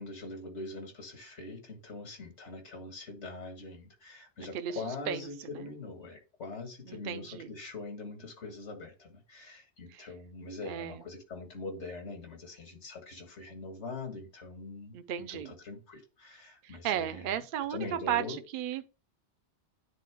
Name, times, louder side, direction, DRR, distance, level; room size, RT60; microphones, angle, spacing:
voice 1, 0.0-15.0 15.3-17.4 17.7-18.4, left 3 dB, 90° left, 2.0 m, -43 dB
voice 2, 7.1-7.5 10.7-10.9 14.9-15.5 16.8-18.2 18.5-18.9, right 10 dB, 55° right, 0.7 m, -33 dB
9.4 x 3.7 x 3.5 m
omnidirectional pair, 1.2 m